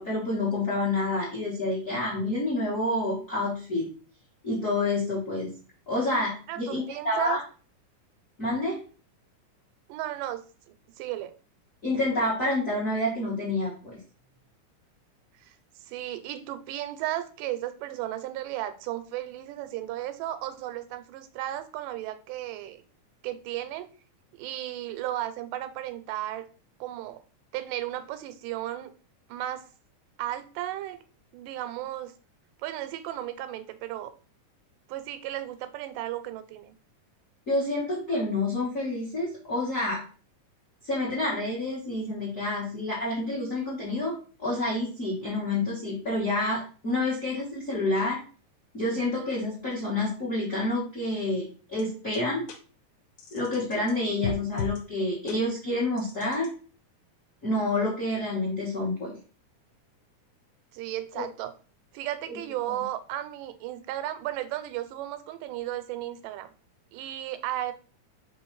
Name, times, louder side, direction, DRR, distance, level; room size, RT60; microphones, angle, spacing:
voice 1, 0.0-3.9 4.4-5.5 5.9-7.4 8.4-8.8 11.8-14.0 37.5-40.0 40.8-48.2 48.7-52.4 53.3-56.5 57.4-59.2 61.1-61.2 62.3-62.4, left 2 dB, 55° left, -5 dB, 0.8 m, -28 dB
voice 2, 6.5-7.4 9.9-11.3 15.4-15.6 15.9-22.8 23.2-23.9 24.3-26.4 26.8-27.2 27.5-28.9 29.3-29.6 30.2-31.0 31.3-32.1 32.6-34.1 34.9-36.7 60.7-61.5 61.9-66.5 66.9-67.7, right 13 dB, 90° right, 10 dB, 2.1 m, -34 dB
sound 1, 51.8-51.9 52.1-52.2 52.5-52.6 53.2-53.9 54.2-54.8 55.3-55.4 56.0-56.5, left 4 dB, 75° left, 2.0 m, -35 dB
4.7 x 3.1 x 3.1 m, 0.38 s
omnidirectional pair, 3.7 m